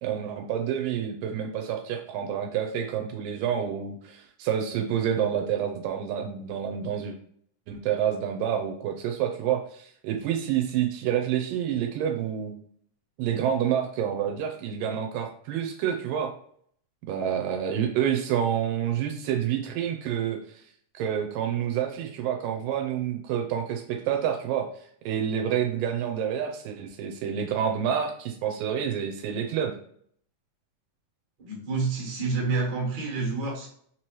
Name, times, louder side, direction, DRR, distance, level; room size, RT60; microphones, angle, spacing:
voice 1, 0.0-7.2 7.7-12.6 13.2-16.3 17.1-20.4 20.9-24.7 25.1-29.7, right 9 dB, 80° right, 3 dB, 2.2 m, -28 dB
voice 2, 31.4-33.7, right 3 dB, 50° right, -3 dB, 1.6 m, -28 dB
5.4 x 3.0 x 3.0 m, 0.63 s
omnidirectional pair, 4.0 m